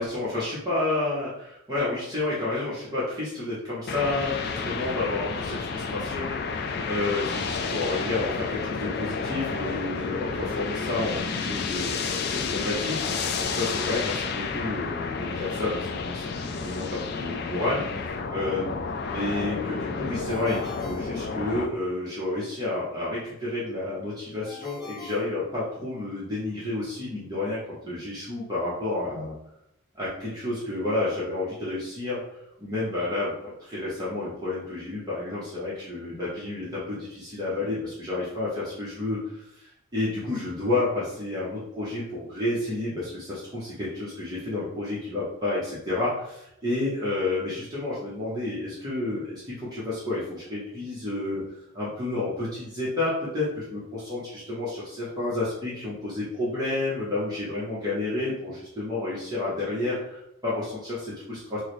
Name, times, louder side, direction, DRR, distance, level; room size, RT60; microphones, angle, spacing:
voice 1, 0.0-6.4 6.9-11.9 12.3-13.1 13.4-18.7 19.1-27.6 27.8-29.3 29.9-32.2 32.6-51.4 51.7-61.6, left 2 dB, 20° right, -9 dB, 0.8 m, -30 dB
sound 1, 3.9-21.7, left 5 dB, 50° left, 0.3 m, -31 dB
Ringtone, 20.3-21.9 24.4-26.1, left 3 dB, 15° left, 0.9 m, -45 dB
4.6 x 2.1 x 3.1 m, 0.79 s
head